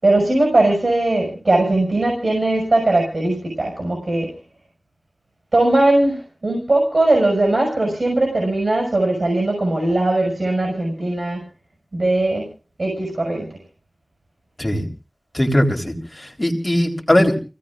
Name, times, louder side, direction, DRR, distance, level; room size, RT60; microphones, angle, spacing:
voice 1, 0.0-4.3 5.5-11.4 11.9-12.4 12.8-13.5, right 2 dB, 65° right, 0 dB, 5.7 m, -19 dB
voice 2, 15.3-17.4, left 1 dB, 25° left, 1 dB, 3.6 m, -19 dB
29.0 x 17.0 x 2.5 m, 0.34 s
wide cardioid pair, 45°, 0 cm